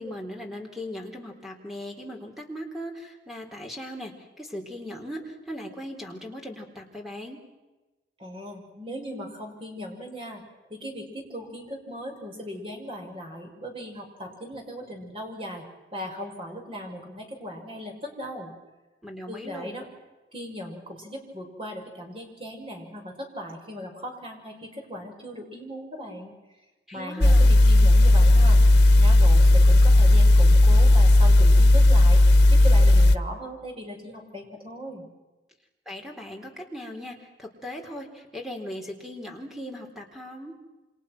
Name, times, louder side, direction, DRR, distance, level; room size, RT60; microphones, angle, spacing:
voice 1, 0.0-4.1 4.4-7.4 19.0-19.8 26.9-27.6 35.9-40.5, equal, ahead, 2 dB, 3.9 m, -38 dB
voice 2, 8.2-10.4 10.7-15.6 15.9-18.5 19.3-19.9 20.3-26.3 26.9-28.6 29.0-32.2 32.5-35.1, equal, 30° right, 1 dB, 6.1 m, -38 dB
sound 1, 27.2-33.2, left 1 dB, 85° left, 1.2 m, -15 dB
28.5 x 27.0 x 6.1 m, 1.1 s
head